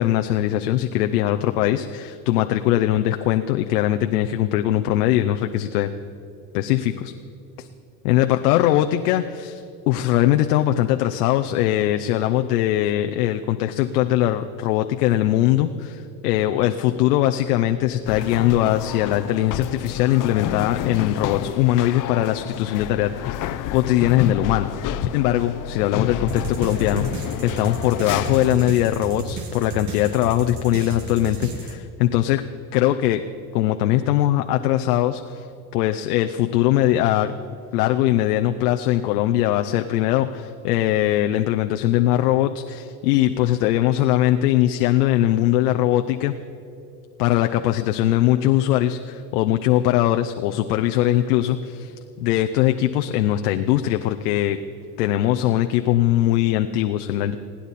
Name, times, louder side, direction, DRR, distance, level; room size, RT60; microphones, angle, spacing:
voice 1, 0.0-5.9 6.5-7.1 7.6-7.7 8.0-32.4 32.7-33.2 33.5-35.5 35.7-37.3 37.7-46.3 47.2-54.6 55.0-57.4, left 13 dB, 85° left, 6 dB, 0.7 m, -21 dB
sound 1, 18.1-28.5, left 11 dB, 45° left, 0.7 m, -30 dB
sound 2, 26.3-31.8, right 2 dB, 40° right, 2.0 m, -32 dB
28.5 x 10.0 x 4.2 m, 2.9 s
supercardioid pair, 100°, 45 cm